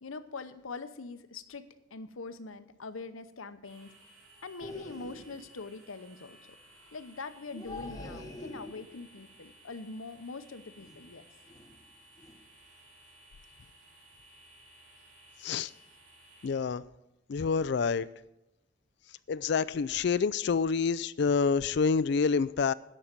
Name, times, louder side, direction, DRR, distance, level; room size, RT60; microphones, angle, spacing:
voice 1, 0.0-1.7 1.9-3.9 4.4-6.4 6.9-11.2, left 3 dB, 80° left, 0.8 m, -43 dB
sound 1, 3.6-16.5, right 1 dB, 60° right, 3.9 m, -58 dB
sound 2, 4.6-5.5 7.5-9.1 10.8-11.1 11.5-11.8 12.2-12.4, left 1 dB, 20° left, 1.0 m, -45 dB
voice 2, 16.4-16.8 17.3-18.1 19.3-22.7, left 5 dB, 55° left, 0.3 m, -27 dB
9.9 x 6.5 x 8.8 m
head